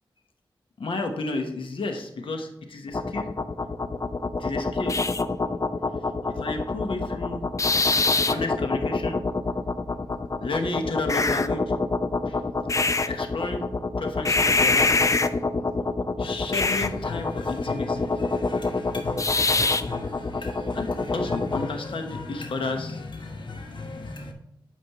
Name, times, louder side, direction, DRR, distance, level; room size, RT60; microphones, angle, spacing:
voice 1, 0.8-3.3 4.4-5.0 6.3-7.5 8.3-9.2 10.4-11.6 12.3-12.4 13.1-13.6 14.0-14.9 16.2-18.1 20.7-23.0, left 3 dB, 85° left, 4 dB, 1.1 m, -32 dB
sound 1, 2.9-21.7, left 3 dB, 35° left, 0.5 m, -25 dB
sound 2, 16.2-24.3, left 3 dB, 65° left, 1.2 m, -38 dB
8.5 x 5.2 x 3.0 m, 0.79 s
cardioid pair, 55°, 9 cm